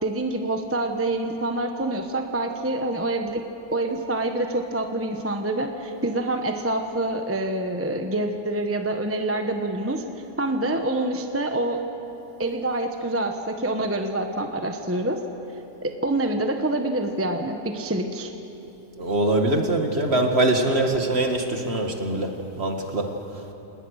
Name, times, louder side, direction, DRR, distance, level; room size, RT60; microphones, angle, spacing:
voice 1, 0.0-3.5 3.7-10.0 10.4-11.8 12.4-15.2 15.8-18.3, right 2 dB, 10° right, 5 dB, 1.0 m, -26 dB
voice 2, 19.0-23.1, right 2 dB, 40° right, 4 dB, 1.9 m, -23 dB
28.0 x 19.5 x 6.5 m, 2.9 s
omnidirectional pair, 1.7 m